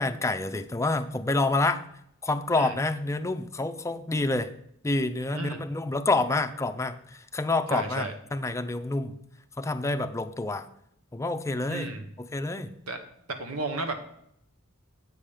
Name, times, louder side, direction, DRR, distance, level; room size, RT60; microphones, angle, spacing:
voice 1, 0.0-1.8 2.2-4.5 4.8-9.1 9.6-10.7 11.1-11.9 12.2-12.7, left 2 dB, 15° left, 8 dB, 0.5 m, -28 dB
voice 2, 7.7-8.1 11.7-12.0 12.9-13.0 13.3-14.0, right 2 dB, 85° right, 7 dB, 1.3 m, -33 dB
8.4 x 5.1 x 7.2 m, 0.73 s
head